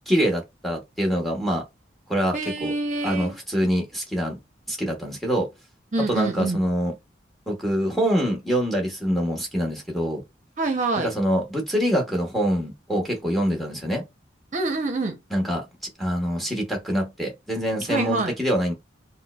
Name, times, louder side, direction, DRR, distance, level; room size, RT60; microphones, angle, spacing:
voice 1, 0.1-1.6 2.1-2.7 3.0-4.3 4.7-5.5 6.1-6.9 7.5-10.2 11.0-14.0 15.3-15.6 16.0-18.7, equal, ahead, 0.8 m, -25 dB
voice 2, 2.3-3.3 5.9-6.6 10.6-11.1 14.5-15.1 17.9-18.3, right 3 dB, 40° right, 0.6 m, -26 dB
4.3 x 2.0 x 2.3 m
head